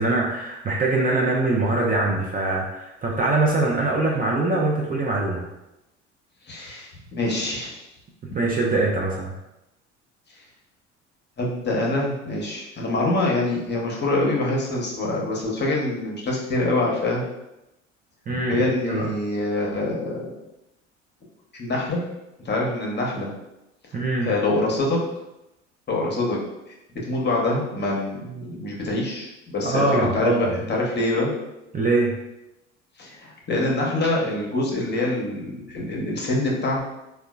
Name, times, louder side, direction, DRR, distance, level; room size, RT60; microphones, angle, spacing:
voice 1, 0.0-5.4 8.4-9.3 18.3-19.1 23.9-24.3 29.6-30.6 31.7-32.1, right 2 dB, 25° right, -2 dB, 0.6 m, -23 dB
voice 2, 6.5-7.8 11.4-17.2 18.3-20.3 21.6-22.0 22.4-23.3 23.9-25.0 25.9-26.4 27.0-31.3 33.0-36.8, left 2 dB, 30° left, -2 dB, 0.9 m, -25 dB
3.7 x 2.3 x 2.3 m, 0.91 s
hypercardioid pair, 65°, 36 cm